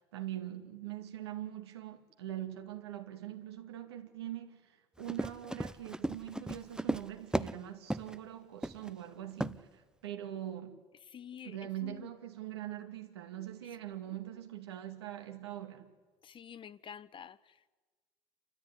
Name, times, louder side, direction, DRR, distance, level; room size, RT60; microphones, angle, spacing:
voice 1, 0.1-10.8 11.4-15.9, right 12 dB, 90° right, 2.3 m, -43 dB
Run, 5.0-7.6 7.9-8.2 8.6-8.9 9.4-9.6, right 1 dB, 5° right, 0.9 m, -35 dB
voice 2, 11.1-12.1 13.6-13.7 14.1-14.2 16.2-17.7, left 8 dB, 40° left, 1.1 m, -49 dB
28.5 x 14.0 x 9.9 m
hypercardioid pair, 70°, 13 cm